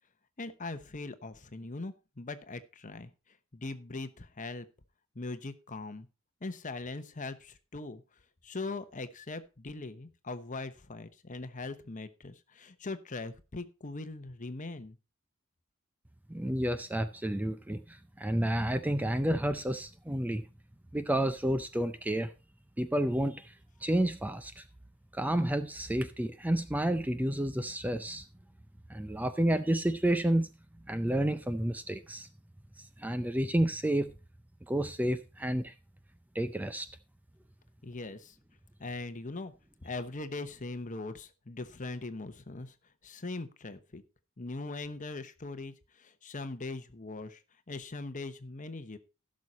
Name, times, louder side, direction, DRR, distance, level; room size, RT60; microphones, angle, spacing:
voice 1, 0.4-4.7 5.1-6.1 6.4-8.0 8.4-15.0 37.8-38.4 38.8-39.5 39.8-42.7 43.0-44.0 44.4-47.4 47.7-49.0, left 3 dB, 40° left, 0.9 m, -40 dB
voice 2, 16.3-20.4 20.9-22.3 22.8-23.5 23.8-24.6 25.1-28.2 28.9-30.5 30.9-32.3 33.0-34.1 34.7-35.7 36.3-36.9, right 1 dB, 10° right, 0.5 m, -30 dB
15.5 x 6.4 x 4.1 m
head